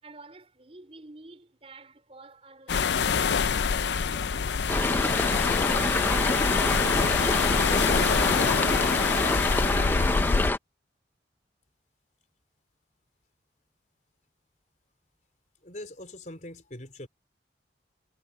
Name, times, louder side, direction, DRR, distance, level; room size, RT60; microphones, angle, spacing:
voice 1, 0.0-5.2, right 2 dB, 35° right, 4.2 m, -50 dB
sound 1, 2.7-10.5, left 6 dB, 80° left, 0.5 m, -26 dB
sound 2, 4.7-10.6, left 2 dB, 10° left, 0.6 m, -26 dB
voice 2, 15.6-17.1, left 1 dB, 45° left, 4.6 m, -42 dB
head